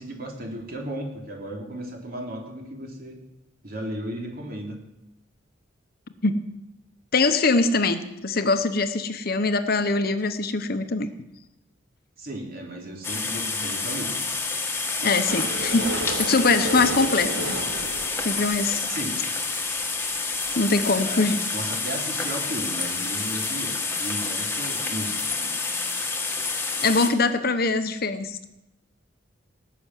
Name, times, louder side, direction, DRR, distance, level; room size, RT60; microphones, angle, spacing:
voice 1, 0.0-3.2 3.6-4.8 12.2-14.2 16.9-17.2 18.9-19.2 20.9-25.6, right 1 dB, 50° right, 1 dB, 3.3 m, -35 dB
voice 2, 7.1-11.1 15.0-15.9 16.2-17.6 18.2-18.9 20.6-21.4 26.8-28.5, left 3 dB, 50° left, 10 dB, 1.0 m, -23 dB
sound 1, 13.0-27.1, left 4 dB, 10° left, 1.6 m, -28 dB
sound 2, 15.3-19.2 19.8-19.9 20.1-20.2 20.4-20.5 20.8-20.9, right 1 dB, 90° right, 2.6 m, -33 dB
18.5 x 6.9 x 9.3 m, 0.89 s
head